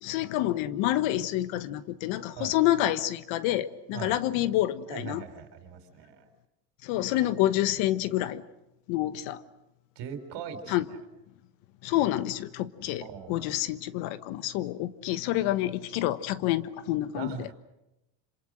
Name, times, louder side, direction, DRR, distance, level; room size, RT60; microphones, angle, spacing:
voice 1, 0.0-5.2 6.8-8.4 8.9-9.4 10.7-10.8 11.8-17.5, left 14 dB, 70° left, 14 dB, 1.3 m, -28 dB
voice 2, 4.9-6.3 10.0-11.0 13.0-13.5 17.1-17.5, right 8 dB, 55° right, 8 dB, 4.2 m, -40 dB
27.0 x 26.5 x 6.3 m, 0.95 s
cardioid pair, 130°, 49 cm